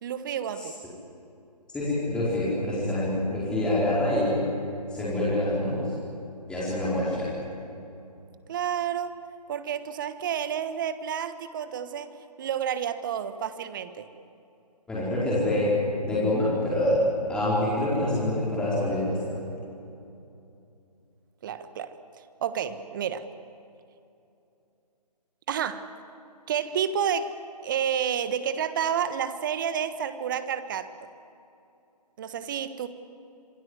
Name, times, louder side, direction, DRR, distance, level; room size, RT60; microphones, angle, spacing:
voice 1, 0.0-0.7 8.5-9.2 9.5-12.1 12.4-14.1 21.4-22.0 22.4-23.2 25.5-25.9 26.5-27.4 27.6-30.9 32.2-32.9, right 8 dB, 30° right, 11 dB, 1.4 m, -30 dB
voice 2, 1.7-4.4 4.9-5.9 6.5-7.3 14.9-15.8 16.0-17.0 17.3-19.2, left 1 dB, 5° left, -8 dB, 4.5 m, -26 dB
26.5 x 22.0 x 8.2 m, 2.7 s
figure-of-eight pair, 150°, 21 cm